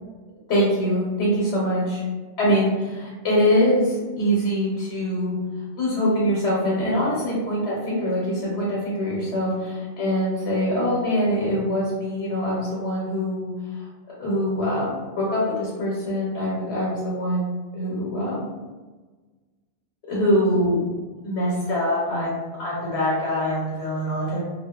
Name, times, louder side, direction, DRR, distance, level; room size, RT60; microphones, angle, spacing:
voice 1, 0.5-2.0 2.4-5.4 5.8-13.5 14.2-17.4 17.7-18.5 20.1-20.8 21.2-24.4, equal, 80° left, -6 dB, 1.0 m, -23 dB
2.4 x 2.2 x 2.3 m, 1.3 s
omnidirectional pair, 1.1 m